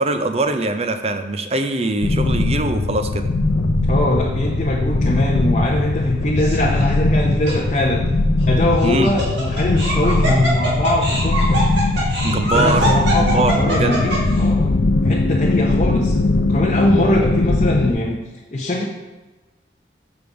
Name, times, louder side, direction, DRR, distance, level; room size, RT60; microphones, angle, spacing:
voice 1, 0.0-3.3 8.8-9.1 12.2-12.9 13.2-14.1, right 2 dB, 35° right, 8 dB, 0.5 m, -22 dB
sound 1, 2.0-17.9, left 2 dB, 90° left, 0.6 m, -20 dB
voice 2, 3.9-8.0 8.5-11.6 12.3-14.7 15.0-16.1 16.5-18.2 18.5-18.9, left 1 dB, 35° left, -2 dB, 0.7 m, -21 dB
Laughter, 6.4-6.8 7.5-7.6 8.8-14.4, right 1 dB, 75° right, 2.2 m, -23 dB
7.0 x 5.3 x 4.7 m, 1.2 s
head